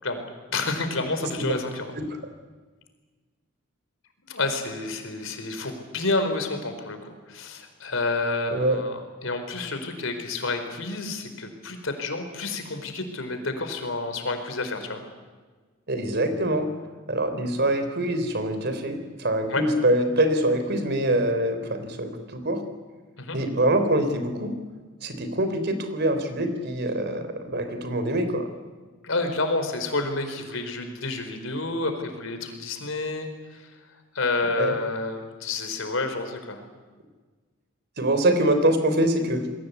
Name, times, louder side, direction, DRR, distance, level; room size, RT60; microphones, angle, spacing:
voice 1, 0.0-1.9 4.2-15.0 19.5-19.6 23.2-23.4 29.0-33.7 34.1-36.6, left 3 dB, 70° left, 7 dB, 4.6 m, -29 dB
voice 2, 1.2-1.5 2.0-2.1 8.5-8.8 15.9-16.7 17.1-22.6 23.3-24.5 25.0-28.5 34.6-34.7 38.0-39.4, right 1 dB, 55° right, 9 dB, 3.7 m, -24 dB
28.0 x 21.5 x 8.4 m, 1.4 s
head